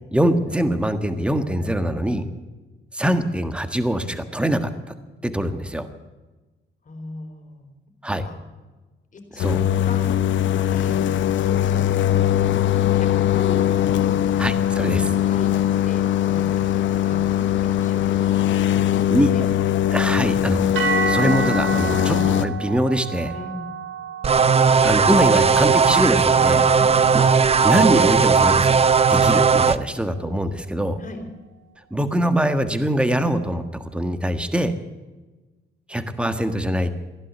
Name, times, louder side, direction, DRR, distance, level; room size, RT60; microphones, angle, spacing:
voice 1, 0.1-2.2 2.9-4.9 5.2-5.9 8.0-8.2 9.3-9.6 14.4-15.1 19.1-19.3 19.9-23.3 24.8-26.6 27.1-27.3 27.6-28.8 29.1-31.0 31.9-34.7 35.9-36.9, equal, 5° right, 9 dB, 1.5 m, -23 dB
voice 2, 6.8-7.8 8.3-8.4 9.1-9.5 9.9-10.2 10.6-11.1 11.5-12.3 12.8-14.4 14.7-15.0 15.3-15.5 15.8-18.2 19.3-19.4 23.3-23.7 26.7-26.9 31.0-31.2, left 3 dB, 40° left, 4 dB, 4.1 m, -38 dB
sound 1, 9.4-22.4, left 11 dB, 75° left, 1.0 m, -21 dB
sound 2, 20.7-29.0, right 6 dB, 80° right, 2.9 m, -31 dB
sound 3, 24.2-29.8, right 5 dB, 30° right, 0.7 m, -17 dB
16.0 x 11.0 x 7.9 m, 1.2 s
cardioid pair, 90°, 20 cm